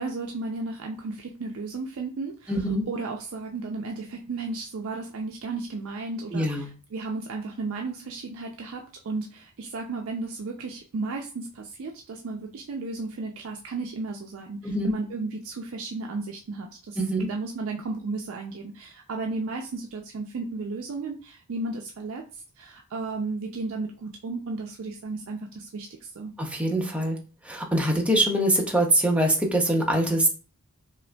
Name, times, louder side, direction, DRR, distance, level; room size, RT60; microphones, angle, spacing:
voice 1, 0.0-17.0 17.3-26.3, right 3 dB, 65° right, 2 dB, 0.4 m, -34 dB
voice 2, 2.5-2.8 6.3-6.7 14.6-14.9 17.0-17.3 26.4-27.2 27.4-30.3, right 1 dB, 5° right, 1 dB, 0.6 m, -23 dB
5.1 x 2.5 x 2.2 m, 0.36 s
head